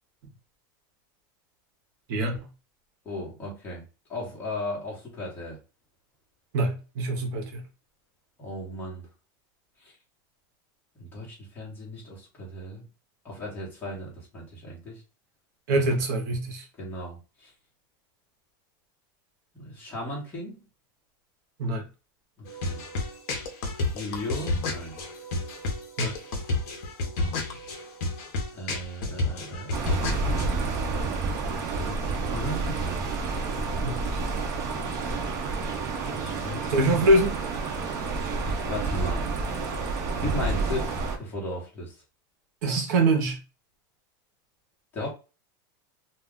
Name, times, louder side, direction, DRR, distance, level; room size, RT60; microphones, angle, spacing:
voice 1, 2.1-2.5 6.5-7.6 15.7-16.6 21.6-21.8 26.0-26.1 33.8-34.2 36.7-37.4 42.6-43.4, right 2 dB, 55° right, 0.8 m, -24 dB
voice 2, 3.0-3.8 4.1-5.6 8.4-9.1 9.8-9.9 11.0-12.9 13.2-15.0 15.7-15.9 16.8-17.5 19.5-20.6 22.4-22.8 23.9-25.0 28.5-31.1 31.8-33.1 36.1-37.0 38.7-39.3 40.2-41.9 44.9-45.1, left 1 dB, 15° left, 1.0 m, -36 dB
sound 1, 22.5-30.5, left 2 dB, 50° left, 0.7 m, -31 dB
sound 2, 29.7-41.2, right 3 dB, 30° right, 0.5 m, -29 dB
2.3 x 2.2 x 3.5 m
supercardioid pair, 170°, 12 cm